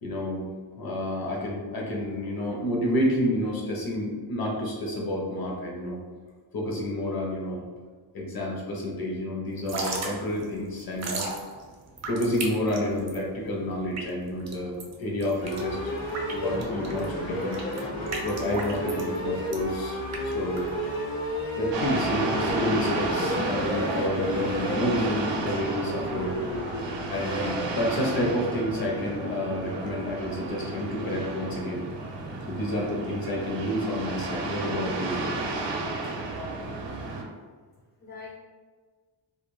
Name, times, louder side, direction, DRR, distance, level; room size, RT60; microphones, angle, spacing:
voice 1, 0.0-0.5 0.8-6.0 6.5-7.6 8.1-11.3 12.1-15.9 16.3-17.6 18.2-20.7 21.6-26.4 27.1-31.9 32.5-35.2, left 1 dB, 55° left, -2 dB, 0.7 m, -29 dB
Drip / Trickle dribble, 9.5-21.1, right 3 dB, 40° right, 0.4 m, -37 dB
sound 1, 15.4-27.5, equal, 75° left, 1.1 m, -32 dB
sound 2, 21.7-37.2, right 2 dB, 85° right, 0.6 m, -32 dB
voice 2, 36.9-37.4 38.0-38.4, left 4 dB, 25° left, -5 dB, 0.4 m, -45 dB
2.4 x 2.2 x 3.0 m, 1.5 s
wide cardioid pair, 175°, 42 cm